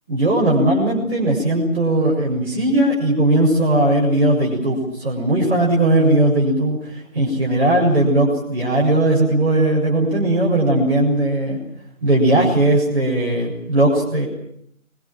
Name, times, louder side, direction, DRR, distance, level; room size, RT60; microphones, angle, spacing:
voice 1, 0.1-11.6 12.0-14.2, right 1 dB, ahead, -17 dB, 1.2 m, -18 dB
28.5 x 23.5 x 7.6 m, 0.70 s
figure-of-eight pair, 170°, 42 cm